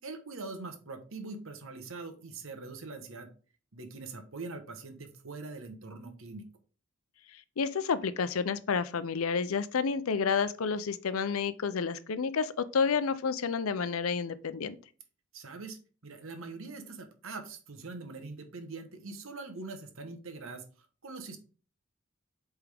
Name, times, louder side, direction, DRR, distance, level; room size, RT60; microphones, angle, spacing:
voice 1, 0.0-3.3 3.7-6.4 15.3-21.4, right 3 dB, 70° right, 1.1 m, -43 dB
voice 2, 7.3-14.8, left 5 dB, 80° left, 0.5 m, -30 dB
8.1 x 3.6 x 3.4 m
head